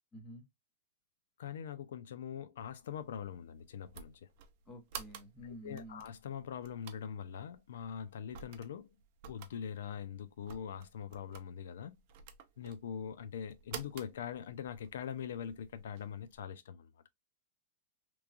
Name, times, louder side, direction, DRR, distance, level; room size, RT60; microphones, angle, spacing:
voice 1, 0.1-0.4 4.7-6.0, equal, 15° left, 0.9 m, -49 dB
voice 2, 1.4-4.2 5.4-8.9 9.3-12.0 12.6-16.9, left 8 dB, 85° left, 0.4 m, -43 dB
sound 1, 2.6-16.4, right 8 dB, 50° right, 0.5 m, -53 dB
3.1 x 2.3 x 2.4 m
supercardioid pair, 160°, 0 cm